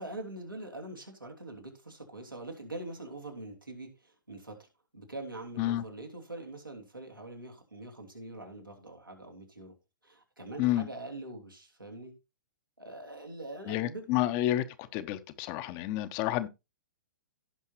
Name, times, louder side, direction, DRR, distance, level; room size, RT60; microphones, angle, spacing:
voice 1, 0.0-4.6 4.9-9.7 10.0-12.1 12.8-14.0, right 2 dB, 90° right, 3.0 m, -43 dB
voice 2, 13.7-14.6 14.9-16.5, left 14 dB, 35° left, 0.9 m, -29 dB
16.5 x 5.6 x 3.0 m
figure-of-eight pair, 115°, 11 cm